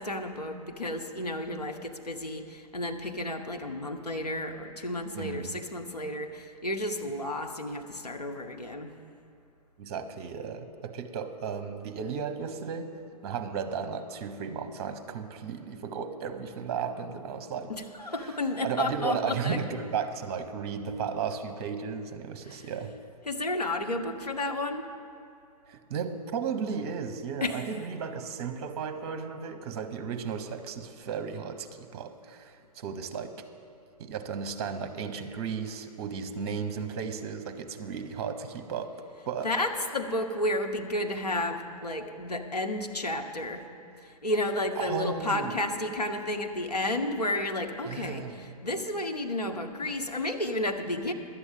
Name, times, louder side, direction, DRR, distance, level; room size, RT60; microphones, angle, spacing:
voice 1, 0.0-8.9 17.7-19.6 19.9-20.0 22.4-22.8 23.2-24.9 27.4-27.8 39.4-43.6 44.0-51.1, left 1 dB, 90° left, 4 dB, 1.0 m, -32 dB
voice 2, 5.1-5.6 9.8-17.7 18.6-22.9 25.7-33.5 34.0-39.5 44.7-45.6 47.8-48.4, right 6 dB, 45° right, 8 dB, 1.0 m, -34 dB
11.5 x 8.3 x 7.6 m, 2.4 s
figure-of-eight pair, 110°, 20 cm